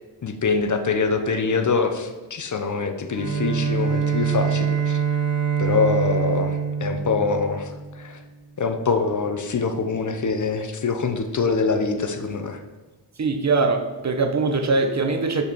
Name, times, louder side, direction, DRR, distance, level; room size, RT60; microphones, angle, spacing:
voice 1, 0.2-5.0 5.6-8.2 8.6-12.6, left 4 dB, 45° left, 7 dB, 0.7 m, -24 dB
Bowed string instrument, 3.1-8.2, right 6 dB, 85° right, 1.6 m, -24 dB
voice 2, 13.2-15.4, right 3 dB, 40° right, 6 dB, 0.7 m, -22 dB
5.7 x 4.4 x 6.1 m, 1.2 s
wide cardioid pair, 110°, 42 cm